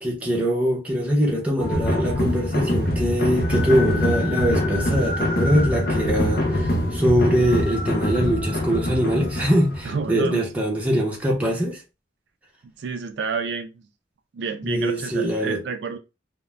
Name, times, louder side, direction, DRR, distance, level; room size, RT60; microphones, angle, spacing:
voice 1, 0.0-11.8 14.6-15.6, equal, 5° right, 0.7 m, -23 dB
sound 1, 1.6-10.1, left 1 dB, 50° left, 0.5 m, -24 dB
voice 2, 9.8-10.5 12.8-13.8 14.3-16.0, right 5 dB, 65° right, 0.3 m, -29 dB
2.4 x 2.1 x 3.1 m
head